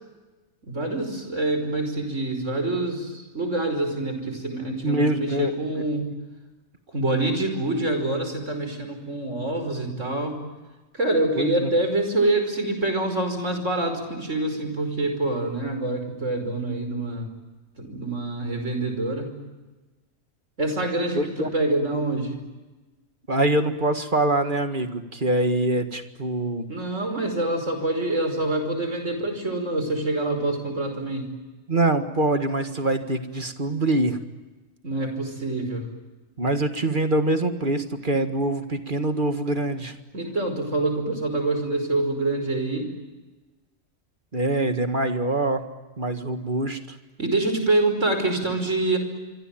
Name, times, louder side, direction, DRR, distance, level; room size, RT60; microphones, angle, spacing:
voice 1, 0.6-6.1 6.9-10.4 10.9-17.3 17.8-19.3 20.6-22.4 26.7-31.3 34.8-35.9 40.1-42.9 47.2-49.0, right 2 dB, 65° right, 6 dB, 5.7 m, -26 dB
voice 2, 4.8-5.8 11.3-11.7 21.2-21.5 23.3-26.7 31.7-34.2 36.4-39.9 44.3-45.6 46.0-47.0, right 2 dB, 40° right, 8 dB, 2.0 m, -24 dB
26.0 x 25.0 x 9.1 m, 1.2 s
omnidirectional pair, 1.4 m